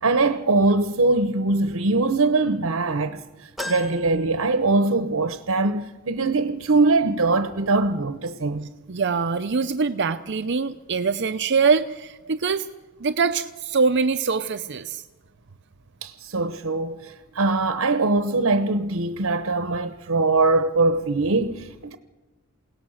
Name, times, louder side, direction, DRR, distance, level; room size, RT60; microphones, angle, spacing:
voice 1, 0.0-8.7 16.0-22.0, right 3 dB, 85° right, 0.9 m, -22 dB
sound 1, 3.6-5.2 5.6-5.7 6.9-7.0, left 1 dB, ahead, 1.4 m, -37 dB
voice 2, 8.9-12.7 13.0-15.0, right 5 dB, 55° right, 0.7 m, -23 dB
28.5 x 17.5 x 6.5 m
head